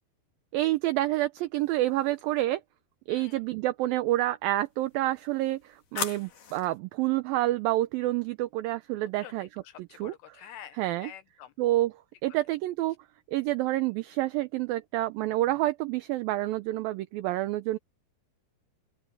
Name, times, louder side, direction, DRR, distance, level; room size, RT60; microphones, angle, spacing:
voice 1, 0.5-2.6 3.1-9.5 9.9-10.1 10.8-11.1 11.6-11.9 12.2-13.0 13.3-17.8, right 16 dB, 80° right, 2.1 m, -28 dB
sound 1, 1.6-2.3 4.7-6.8, left 8 dB, 55° left, 3.9 m, -40 dB
voice 2, 3.1-3.4 9.2-11.5, left 11 dB, 80° left, 3.2 m, -48 dB
open air
omnidirectional pair, 4.9 m